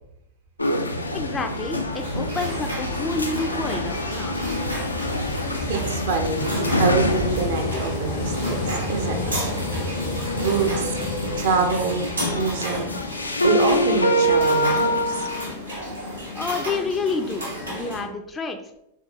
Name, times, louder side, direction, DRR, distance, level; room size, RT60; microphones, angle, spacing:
sound 1, 0.6-15.5, equal, 80° left, 0.4 m, -26 dB
sound 2, 0.9-18.1, left 1 dB, 65° left, 0.8 m, -32 dB
voice 1, 1.1-4.5 16.3-18.8, left 4 dB, 15° left, 5 dB, 0.4 m, -29 dB
sound 3, 1.9-18.0, equal, 85° right, 1.4 m, -34 dB
voice 2, 5.6-9.3 10.3-10.9 11.4-12.9 13.4-15.3, right 4 dB, 55° right, 4 dB, 0.6 m, -26 dB
3.8 x 3.5 x 2.9 m, 0.80 s
figure-of-eight pair, 90°, 0 cm